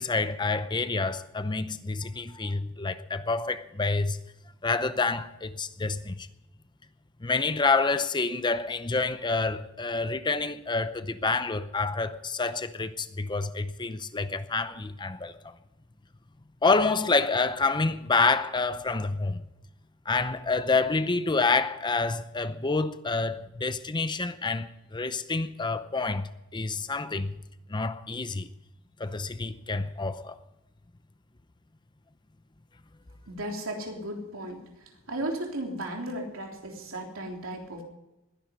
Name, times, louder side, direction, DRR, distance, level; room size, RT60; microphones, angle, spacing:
voice 1, 0.0-4.2 4.6-6.3 7.2-15.5 16.6-19.4 20.1-27.3 27.7-28.5 29.0-30.4, left 3 dB, 20° left, 0.7 m, -28 dB
voice 2, 33.3-34.6 35.1-37.8, right 1 dB, 70° right, 3.5 m, -35 dB
21.0 x 10.5 x 5.3 m
head